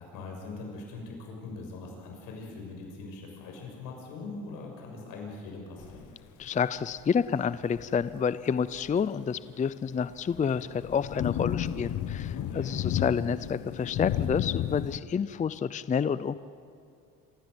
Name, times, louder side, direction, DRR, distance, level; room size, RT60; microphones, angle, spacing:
voice 1, 0.0-6.0 12.3-12.7, left 3 dB, 85° left, 0 dB, 6.6 m, -41 dB
sound 1, 5.8-6.0 7.0-7.1 7.6-8.0 8.8-8.9 10.3-15.0, left 11 dB, 65° left, 1.0 m, -32 dB
voice 2, 6.4-16.4, left 6 dB, 25° left, 16 dB, 0.5 m, -29 dB
26.5 x 16.0 x 8.1 m, 2.3 s
cardioid pair, 95°, 33 cm